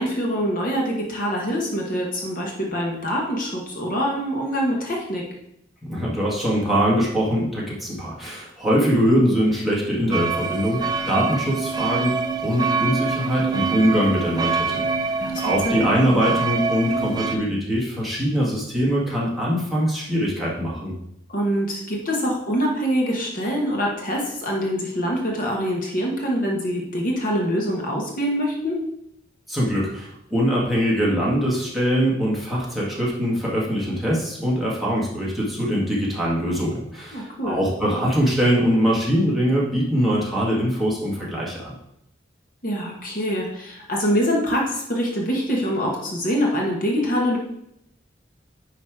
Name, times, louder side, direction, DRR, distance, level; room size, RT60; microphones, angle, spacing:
voice 1, 0.0-5.2 15.2-15.9 21.3-28.8 37.1-37.6 42.6-47.4, equal, 50° left, -1 dB, 1.4 m, -24 dB
voice 2, 5.8-20.9 29.5-41.7, equal, ahead, -6 dB, 1.8 m, -22 dB
sound 1, 10.1-17.4, right 5 dB, 20° right, 0.5 m, -25 dB
9.7 x 3.3 x 4.8 m, 0.79 s
head